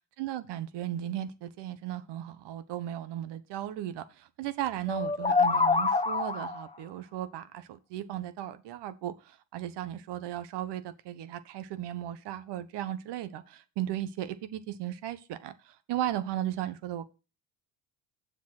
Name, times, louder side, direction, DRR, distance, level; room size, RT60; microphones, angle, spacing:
voice 1, 0.2-17.1, right 12 dB, 70° right, 1.3 m, -36 dB
sound 1, 4.9-6.7, left 4 dB, 15° left, 1.0 m, -26 dB
7.4 x 6.5 x 5.9 m
supercardioid pair, 90°, 43 cm